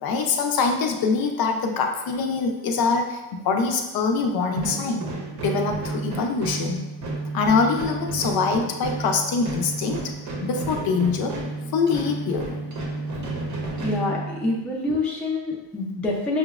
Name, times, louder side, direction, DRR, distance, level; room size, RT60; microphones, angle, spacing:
voice 1, 0.0-5.1 5.4-6.8 7.3-10.1 10.4-11.3 11.7-12.5, left 4 dB, 55° left, 3 dB, 0.5 m, -24 dB
sound 1, 4.5-14.7, right 3 dB, 40° right, 0.7 m, -31 dB
voice 2, 13.8-16.4, left 2 dB, 5° left, -4 dB, 0.4 m, -26 dB
5.6 x 2.0 x 2.3 m, 1.0 s
cardioid pair, 140°, 43 cm